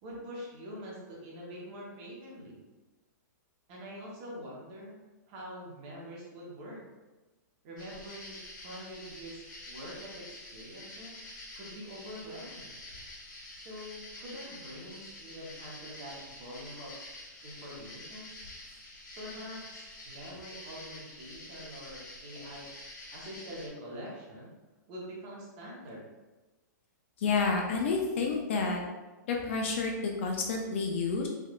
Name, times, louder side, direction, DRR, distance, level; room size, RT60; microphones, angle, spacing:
voice 1, 0.0-2.6 3.7-5.0 5.3-6.8 7.6-11.2 11.5-12.7 13.5-16.9 17.4-18.4 19.2-22.7 23.1-24.5 24.9-26.1, equal, 30° right, -4 dB, 0.8 m, -45 dB
sound 1, 7.8-23.7, left 1 dB, 80° left, 1.0 m, -47 dB
voice 2, 27.2-28.8 29.3-31.3, left 4 dB, 40° left, 1 dB, 0.3 m, -29 dB
3.5 x 2.4 x 2.3 m, 1.2 s
hypercardioid pair, 165°, 10 cm